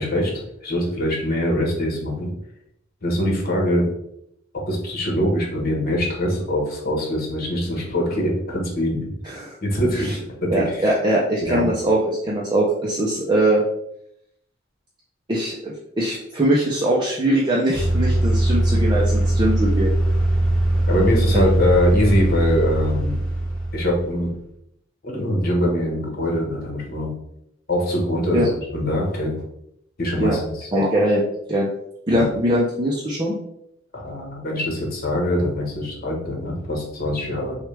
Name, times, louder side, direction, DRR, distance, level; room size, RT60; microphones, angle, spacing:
voice 1, 0.0-2.3 3.0-3.9 4.7-9.1 9.6-10.9 11.4-11.7 20.9-23.2 23.7-24.3 25.0-27.1 27.7-29.3 30.0-30.7 32.1-32.3 33.9-37.6, left 1 dB, 50° left, -1 dB, 1.4 m, -23 dB
voice 2, 10.5-13.6 15.3-19.9 21.3-21.4 28.3-28.5 30.2-30.3 30.7-31.2 31.5-31.7 32.1-33.3, right 1 dB, 25° right, -4 dB, 0.6 m, -21 dB
sound 1, 17.7-24.3, right 1 dB, 5° left, 1.6 m, -20 dB
6.1 x 2.4 x 3.3 m, 0.77 s
head